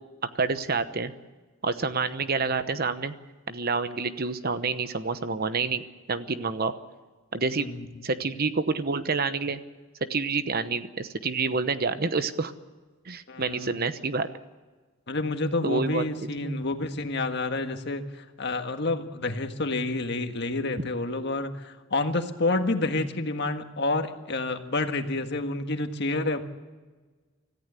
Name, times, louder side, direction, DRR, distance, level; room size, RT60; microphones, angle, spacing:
voice 1, 0.3-1.1 1.6-3.1 3.5-6.7 7.3-7.7 8.0-9.6 10.1-12.5 13.1-14.3 15.6-16.0 16.4-16.6, right 4 dB, 50° right, 12 dB, 1.0 m, -28 dB
voice 2, 13.3-13.8 15.1-26.4, left 2 dB, 55° left, 6 dB, 1.7 m, -29 dB
25.5 x 14.5 x 8.3 m, 1.4 s
head